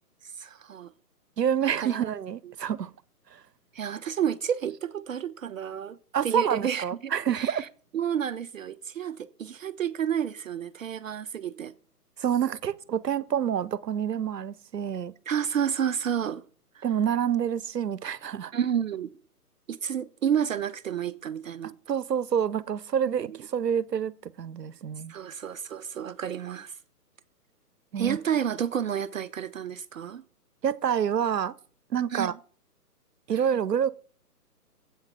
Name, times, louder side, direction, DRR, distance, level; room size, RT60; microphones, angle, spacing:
voice 1, 0.2-0.9 1.6-2.0 2.4-2.5 3.7-7.7 7.9-11.7 15.3-16.4 16.7-16.8 18.5-19.1 19.7-21.8 23.1-23.4 25.1-26.8 28.0-30.2 32.1-32.3 33.3-33.4, right 8 dB, 55° right, 0.5 m, -30 dB
voice 2, 1.4-2.9 6.1-7.6 12.2-15.1 16.8-18.5 21.9-25.1 27.9-28.2 30.6-31.5 31.9-32.3 33.3-33.9, right 8 dB, 90° right, 0.8 m, -27 dB
8.1 x 6.5 x 6.7 m
hypercardioid pair, 145°, 47 cm